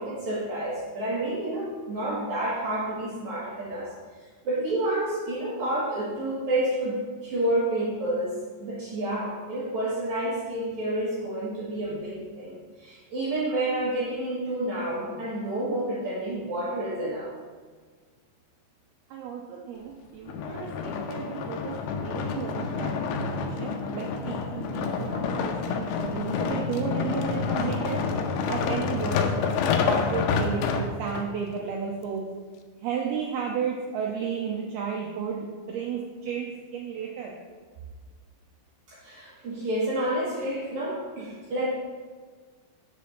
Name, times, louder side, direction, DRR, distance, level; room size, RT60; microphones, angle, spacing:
voice 1, 0.0-3.9 4.4-17.3 24.6-24.9 27.6-27.7 38.9-41.7, right 1 dB, 70° right, -6 dB, 1.7 m, -29 dB
voice 2, 19.1-28.0 28.5-29.5 29.9-32.2 32.8-37.3, right 6 dB, 90° right, -1 dB, 2.2 m, -33 dB
sound 1, 20.3-31.3 31.9-32.0, left 5 dB, 80° left, 2.6 m, -28 dB
6.7 x 5.1 x 6.7 m, 1.5 s
omnidirectional pair, 5.3 m